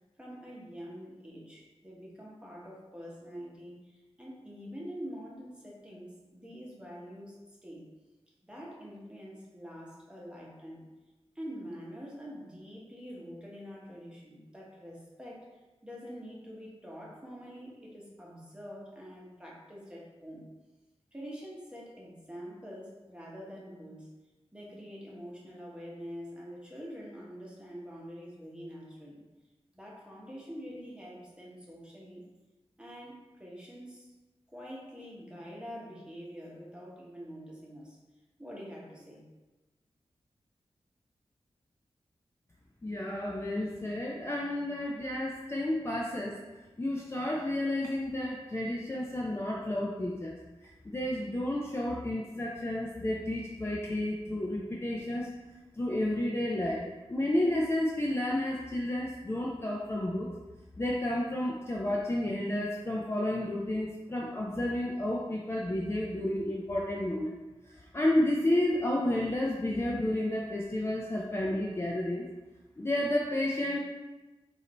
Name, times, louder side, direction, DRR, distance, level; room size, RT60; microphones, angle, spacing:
voice 1, 0.2-7.8 8.4-10.8 11.3-20.5 21.1-24.1 24.5-29.2 29.7-32.2 32.8-34.1 34.5-38.0 38.4-39.2, equal, 10° right, -4 dB, 1.1 m, -45 dB
voice 2, 42.8-46.4 46.8-50.4 50.8-55.3 55.7-60.3 60.8-67.4 67.7-72.2 72.8-73.8, left 1 dB, 25° left, -2 dB, 0.5 m, -31 dB
4.8 x 2.6 x 4.2 m, 1.2 s
wide cardioid pair, 85°, 11 cm